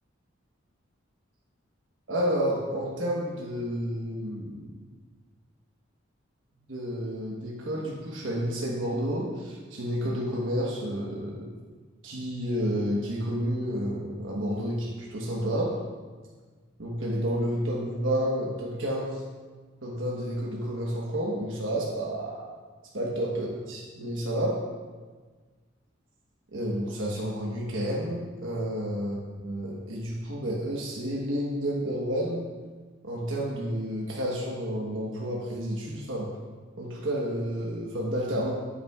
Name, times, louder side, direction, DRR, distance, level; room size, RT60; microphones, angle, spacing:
voice 1, 2.1-4.7 6.7-11.5 12.0-15.8 16.8-19.2 19.8-22.4 22.9-24.6 26.5-32.5 33.0-36.3 36.8-38.5, equal, 75° right, -4 dB, 1.2 m, -30 dB
9.6 x 8.6 x 2.4 m, 1.4 s
head